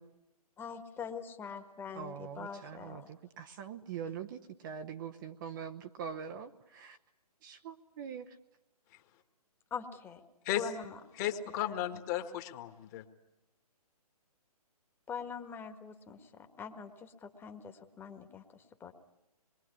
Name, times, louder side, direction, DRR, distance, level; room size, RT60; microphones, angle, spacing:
voice 1, 0.6-3.1 9.7-10.2 10.5-11.0 11.9-12.0 15.1-18.9, left 6 dB, 10° left, 6 dB, 1.5 m, -44 dB
voice 2, 1.9-7.0 7.4-8.4, right 7 dB, 30° right, 6 dB, 0.9 m, -43 dB
voice 3, 11.2-13.0, left 12 dB, 25° left, 8 dB, 1.7 m, -34 dB
26.5 x 22.5 x 9.7 m, 0.93 s
figure-of-eight pair, 135°, 20 cm